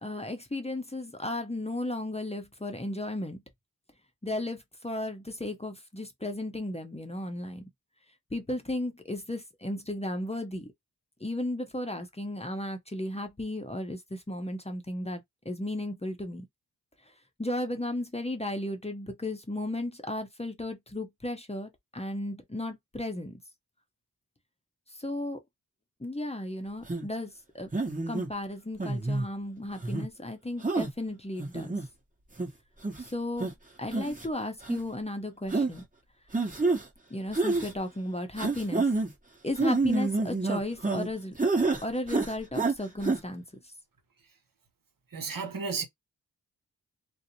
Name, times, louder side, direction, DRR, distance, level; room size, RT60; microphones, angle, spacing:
voice 1, 0.0-3.4 4.2-7.7 8.3-10.7 11.2-16.5 17.4-23.4 25.0-25.4 26.0-27.7 28.1-31.8 33.0-33.5 33.8-35.9 37.1-38.9 39.4-41.4 41.8-43.4, left 1 dB, 15° left, 0.7 m, -35 dB
sound 1, 26.9-27.1 27.7-28.3 28.8-29.3 29.8-30.1 30.6-30.9 31.4-31.8 32.4-32.5 32.8-33.0 33.4-33.5 33.9-34.3 34.6-34.8 35.5-35.7 36.3-36.8 37.3-37.7 38.4-39.1 39.6-41.1 41.4-41.8 42.1-42.7 43.0-43.2, right 3 dB, 20° right, 1.1 m, -28 dB
voice 2, 45.1-45.8, right 5 dB, 60° right, 0.9 m, -33 dB
2.5 x 2.1 x 2.8 m
cardioid pair, 40°, 38 cm